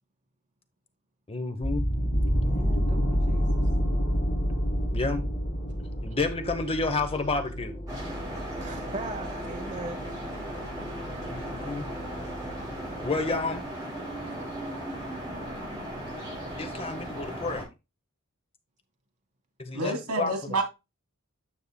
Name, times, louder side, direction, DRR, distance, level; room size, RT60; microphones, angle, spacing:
voice 1, 1.3-1.9 4.9-5.2 6.0-7.8 11.2-11.9 13.0-13.6 16.6-17.7 19.6-20.5, left 3 dB, 25° left, 0.9 m, -30 dB
sound 1, 1.6-13.6, equal, 40° left, 2.4 m, -30 dB
voice 2, 2.4-3.5 8.6-10.0, right 2 dB, 35° right, 0.8 m, -39 dB
sound 2, 7.9-17.6, right 1 dB, 15° right, 5.0 m, -37 dB
voice 3, 19.7-20.6, right 2 dB, 90° right, 2.8 m, -28 dB
9.7 x 6.7 x 2.3 m
head